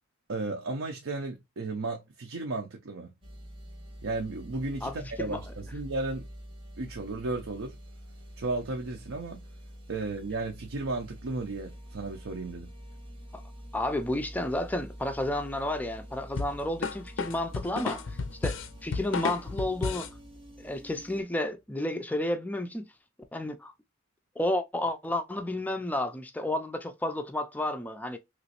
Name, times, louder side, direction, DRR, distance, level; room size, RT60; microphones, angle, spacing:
voice 1, 0.3-3.1 4.0-6.3 6.8-7.7 8.4-9.5 9.9-12.7, right 3 dB, 75° right, 0.5 m, -34 dB
sound 1, 3.2-21.2, equal, 25° right, 0.7 m, -47 dB
voice 2, 4.8-5.4 13.3-13.4 13.7-18.0 18.4-20.1 20.6-22.8 23.3-23.7 24.4-28.2, left 1 dB, 10° left, 0.3 m, -31 dB
sound 2, 16.4-20.2, left 4 dB, 70° left, 0.5 m, -33 dB
3.0 x 3.0 x 2.8 m
head